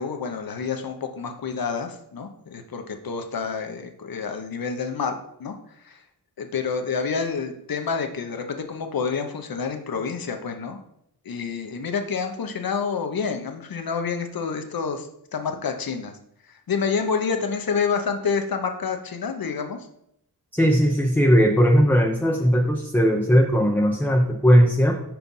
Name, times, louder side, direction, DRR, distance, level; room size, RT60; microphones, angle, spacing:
voice 1, 0.0-6.0 6.4-10.8 11.2-16.1 16.4-19.8, left 5 dB, 60° left, 5 dB, 1.0 m, -28 dB
voice 2, 20.5-24.9, equal, 5° left, 2 dB, 0.6 m, -18 dB
5.2 x 4.5 x 5.4 m, 0.76 s
cardioid pair, 75°, 40 cm